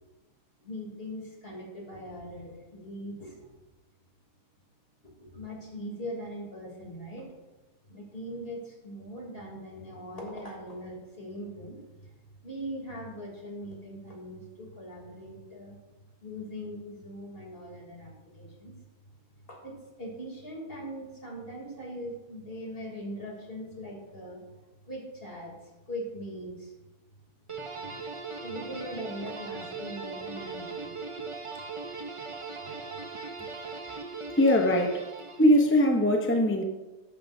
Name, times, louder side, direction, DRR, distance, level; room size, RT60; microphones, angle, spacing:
voice 1, 0.6-3.5 5.0-7.3 7.9-12.1 12.4-15.8 16.2-18.8 19.5-24.4 24.8-25.5 25.9-26.7 27.8-27.9 28.4-31.0 31.5-31.6, equal, 35° left, -1 dB, 3.3 m, -41 dB
sound 1, 27.5-35.8, right 4 dB, 30° right, 0.6 m, -39 dB
voice 2, 34.4-35.0 35.4-36.6, left 1 dB, 15° left, 3 dB, 0.4 m, -21 dB
13.5 x 11.5 x 2.7 m, 1.1 s
omnidirectional pair, 1.7 m